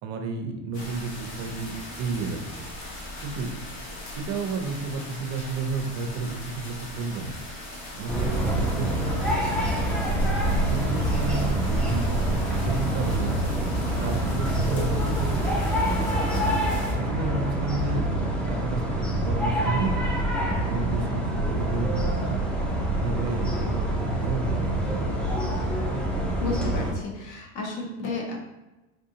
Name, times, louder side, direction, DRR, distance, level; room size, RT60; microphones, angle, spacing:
voice 1, 0.0-2.7 3.2-3.5 4.2-7.3 8.0-9.1 10.7-12.2 12.6-13.4 14.0-16.4 17.0-18.1 18.4-20.1 20.6-22.4 23.0-23.5 24.0-25.1, right 4 dB, 45° right, 5 dB, 0.6 m, -31 dB
sound 1, 0.7-16.9, left 1 dB, 85° left, 1.1 m, -40 dB
sound 2, 8.1-26.9, right 1 dB, 5° left, 0.3 m, -26 dB
voice 2, 26.4-28.4, left 3 dB, 50° left, 1 dB, 1.0 m, -32 dB
4.1 x 2.6 x 2.7 m, 1.0 s
supercardioid pair, 115°, 38 cm